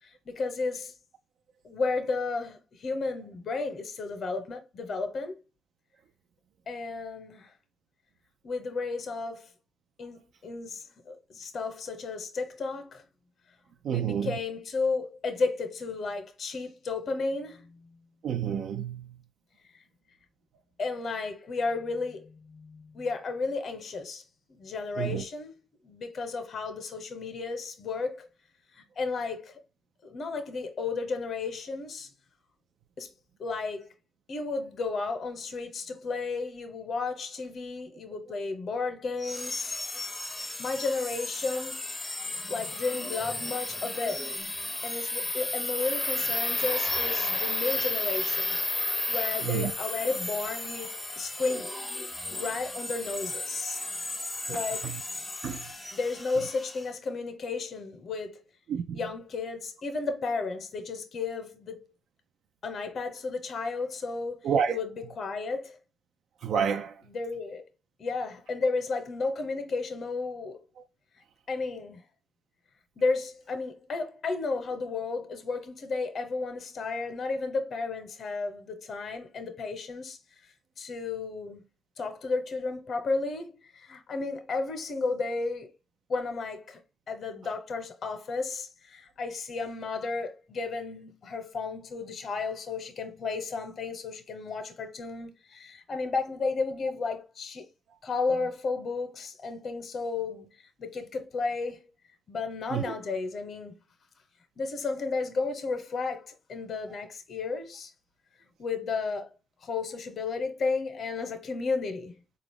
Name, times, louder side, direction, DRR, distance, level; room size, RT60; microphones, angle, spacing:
voice 1, 0.0-0.9 1.6-5.3 6.7-7.5 8.4-9.5 10.0-13.0 13.8-17.8 20.8-24.2 24.5-25.5 25.8-28.3 28.7-29.5 30.0-32.1 33.0-33.1 33.4-33.9 34.3-39.7 40.6-41.8 42.5-44.3 44.8-48.6 48.8-51.7 52.3-53.8 54.5-54.9 55.9-58.4 58.9-61.8 62.6-65.8 67.1-67.6 68.0-70.6 71.5-72.0 73.0-80.2 80.8-81.6 82.0-85.7 86.1-86.8 87.1-97.7 98.0-100.5 100.8-101.8 102.3-103.7 104.6-107.9 108.6-109.3 109.6-112.1, left 4 dB, 55° left, 0.8 m, -33 dB
voice 2, 13.8-14.4 18.2-19.2 25.0-25.2 42.2-42.3 49.4-49.7 54.5-55.0 55.4-55.7 58.7-59.0 64.4-64.8 66.4-67.0 70.8-70.9 90.6-90.7 102.7-102.9, right 8 dB, 75° right, 0.4 m, -30 dB
sound 1, 39.2-56.9, left 2 dB, 15° left, 0.6 m, -33 dB
4.0 x 2.4 x 3.5 m
cardioid pair, 90°, 0 cm